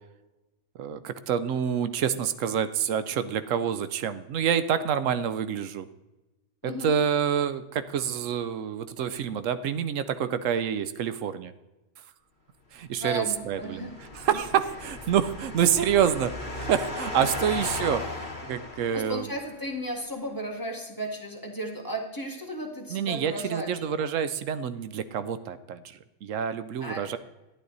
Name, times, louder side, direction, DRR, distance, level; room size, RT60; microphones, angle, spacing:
voice 1, 0.8-5.9 6.6-11.5 12.7-13.9 14.1-19.3 22.9-27.2, right 8 dB, 80° right, 13 dB, 1.0 m, -27 dB
voice 2, 6.6-6.9 13.0-13.9 14.3-14.4 18.9-23.7 26.8-27.1, right 1 dB, 15° left, 1 dB, 1.7 m, -34 dB
sound 1, 13.3-19.5, left 2 dB, 40° left, 2.1 m, -36 dB
11.5 x 10.5 x 4.0 m, 1.1 s
omnidirectional pair, 1.3 m